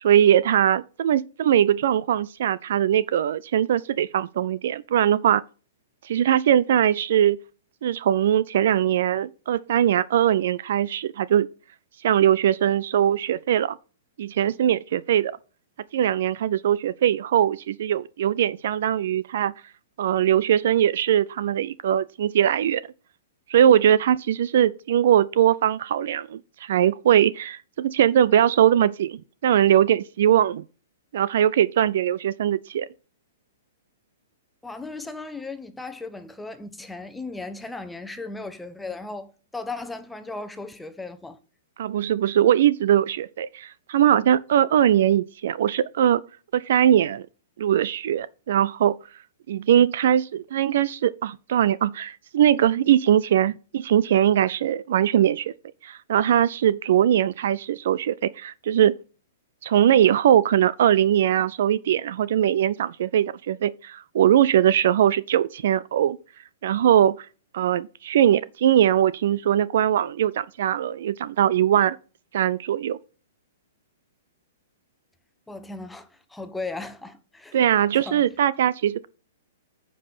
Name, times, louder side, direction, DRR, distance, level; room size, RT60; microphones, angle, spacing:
voice 1, 0.0-5.4 6.0-7.4 7.8-11.5 12.0-13.8 14.2-15.4 15.9-19.5 20.0-22.8 23.5-30.6 31.1-32.9 41.8-46.2 46.5-47.3 47.6-49.0 49.5-55.5 55.8-59.0 59.6-66.2 66.6-67.2 67.5-72.0 72.3-73.0 77.5-79.1, right 10 dB, 60° right, 0.4 m, -21 dB
voice 2, 34.6-41.4 75.5-77.6 77.9-78.3, left 3 dB, 5° left, 1.1 m, -36 dB
9.7 x 5.5 x 4.2 m
figure-of-eight pair, 115°, 0 cm